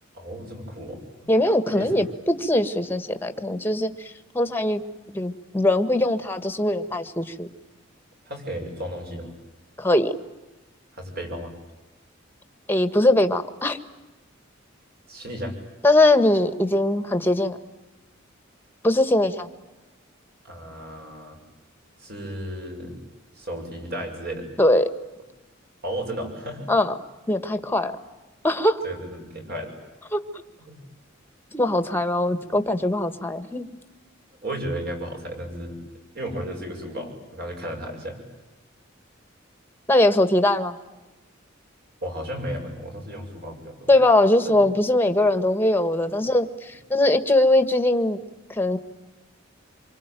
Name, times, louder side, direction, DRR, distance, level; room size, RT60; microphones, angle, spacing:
voice 1, 0.1-1.0 1.7-2.0 8.3-9.3 10.9-11.5 15.1-15.6 20.4-21.4 22.0-23.0 23.3-24.5 25.8-26.7 28.8-29.7 30.7-30.8 34.4-35.8 36.1-38.2 42.0-43.9 44.4-44.6, right 1 dB, 50° right, 3 dB, 7.5 m, -34 dB
voice 2, 1.3-4.8 5.1-7.5 9.8-10.1 12.7-13.8 15.8-17.6 18.8-19.5 24.6-24.9 26.7-27.0 27.3-27.9 28.4-28.8 30.1-30.2 31.5-33.7 39.9-40.8 43.9-48.2 48.5-48.8, left 1 dB, 10° left, 10 dB, 1.5 m, -21 dB
27.0 x 24.0 x 9.2 m, 1.1 s
head